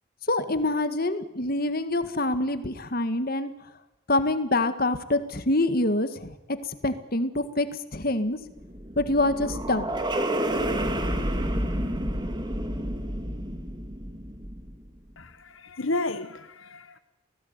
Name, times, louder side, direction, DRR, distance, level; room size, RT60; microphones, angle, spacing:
voice 1, 0.3-3.5 4.1-6.6 6.8-7.7 7.9-8.4 9.0-9.9, left 2 dB, 45° left, 1.8 m, -25 dB
sound 1, 8.4-14.9, right 1 dB, 20° right, 2.5 m, -30 dB
voice 2, 15.2-17.0, left 2 dB, 70° left, 1.2 m, -32 dB
29.0 x 18.5 x 9.6 m
head